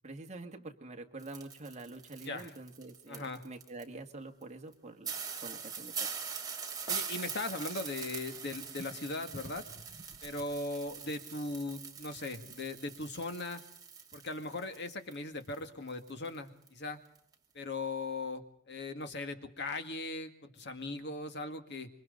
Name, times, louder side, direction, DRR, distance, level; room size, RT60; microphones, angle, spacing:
voice 1, 0.0-5.9, right 2 dB, 35° right, 4 dB, 2.0 m, -46 dB
sound 1, 1.2-3.8 4.4-4.5 4.7-4.8 5.0-15.1 15.4-16.4 16.7-16.8 17.2-17.3, right 6 dB, 20° right, 2.7 m, -42 dB
voice 2, 3.1-3.4 6.9-9.6 10.2-13.6 14.1-17.0 17.5-21.9, left 2 dB, 60° left, 7 dB, 2.0 m, -39 dB
sound 2, 7.3-13.0, right 1 dB, 35° left, 5.7 m, -56 dB
27.0 x 24.5 x 4.0 m, 0.71 s
head